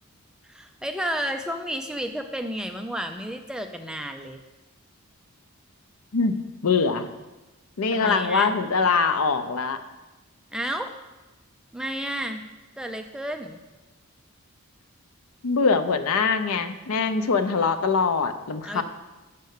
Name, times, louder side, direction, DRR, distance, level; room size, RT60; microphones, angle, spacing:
voice 1, 0.4-4.4 7.9-8.5 10.5-10.9 11.7-12.4 12.8-13.6 18.6-18.8, equal, 5° right, 5 dB, 0.3 m, -31 dB
voice 2, 6.6-7.1 7.8-9.8 15.4-18.8, left 4 dB, 75° left, 10 dB, 0.6 m, -23 dB
6.6 x 5.5 x 6.5 m, 1.1 s
head